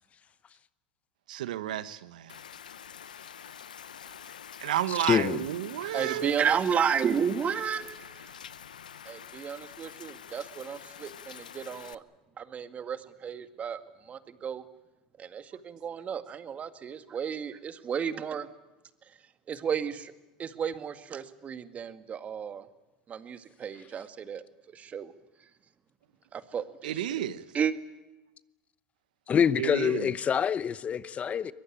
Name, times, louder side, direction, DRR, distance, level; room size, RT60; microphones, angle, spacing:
voice 1, 1.3-2.4 4.6-6.4 26.8-27.4 29.6-30.1, right 12 dB, 80° right, 1.1 m, -31 dB
Rain, 2.3-11.9, left 8 dB, 90° left, 0.8 m, -46 dB
voice 2, 5.1-5.5 29.3-31.5, left 8 dB, 30° left, 0.9 m, -26 dB
voice 3, 5.8-8.3 9.1-12.0 12.4-14.6 15.2-18.5 19.5-20.1 20.4-22.7 23.1-24.4 24.7-25.1 26.3-27.2 27.5-27.7, right 7 dB, 35° right, 2.0 m, -33 dB
23.0 x 22.0 x 8.8 m
hypercardioid pair, 90°, 4 cm